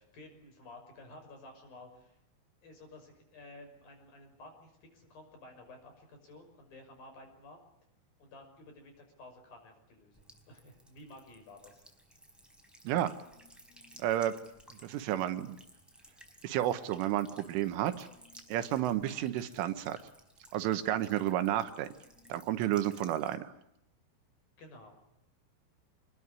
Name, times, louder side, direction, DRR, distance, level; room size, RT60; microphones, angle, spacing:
voice 1, 0.0-2.2 2.6-7.6 8.2-11.8 24.6-25.0, left 2 dB, 45° left, 5 dB, 7.5 m, -53 dB
Buzz / Water tap faucet / Trickle dribble, 10.1-23.3, equal, ahead, 3.8 m, -58 dB
voice 2, 14.0-14.3 14.8-15.6 16.4-18.1 18.5-20.0 20.5-22.0 22.3-23.5, right 12 dB, 80° right, 10 dB, 3.6 m, -31 dB
26.5 x 21.0 x 9.8 m, 0.82 s
omnidirectional pair, 5.7 m